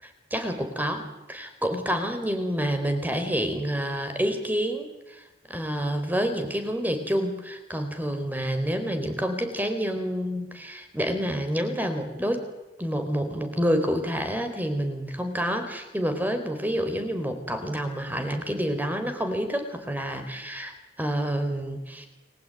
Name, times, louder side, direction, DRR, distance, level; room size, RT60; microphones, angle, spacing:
voice 1, 0.0-12.4 12.8-22.1, equal, 10° right, 7 dB, 4.3 m, -28 dB
30.0 x 21.5 x 9.2 m, 1.0 s
head